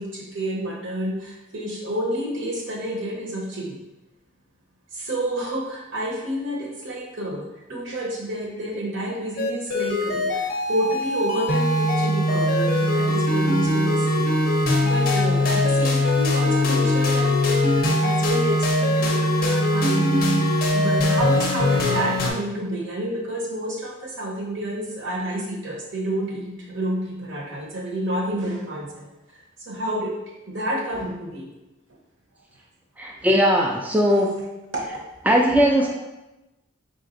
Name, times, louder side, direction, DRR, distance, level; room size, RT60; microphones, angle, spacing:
voice 1, 0.0-3.8 4.9-14.3 14.7-30.2 30.5-31.5 33.1-33.2 34.7-35.1 35.5-35.6, right 1 dB, 60° right, -2 dB, 0.9 m, -29 dB
sound 1, 9.4-22.3, left 1 dB, 45° left, 0.5 m, -21 dB
voice 2, 33.0-34.4 34.9-35.0 35.2-35.9, equal, 5° right, -1 dB, 0.3 m, -19 dB
4.0 x 3.7 x 2.5 m, 1.0 s
head